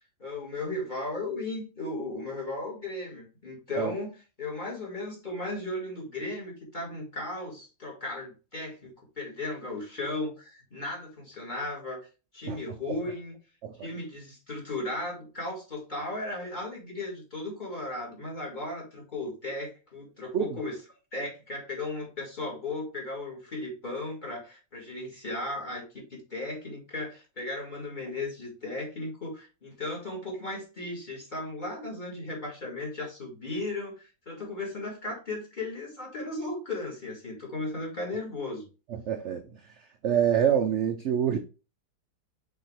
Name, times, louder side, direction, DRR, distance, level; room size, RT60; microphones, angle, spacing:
voice 1, 0.2-4.1 4.4-8.9 9.2-12.0 12.3-13.4 13.8-20.8 21.1-38.7, left 2 dB, 25° left, 2.4 m, -36 dB
voice 2, 38.9-39.4 40.0-41.4, right 9 dB, 60° right, 0.8 m, -26 dB
6.1 x 4.6 x 3.3 m
omnidirectional pair, 1.8 m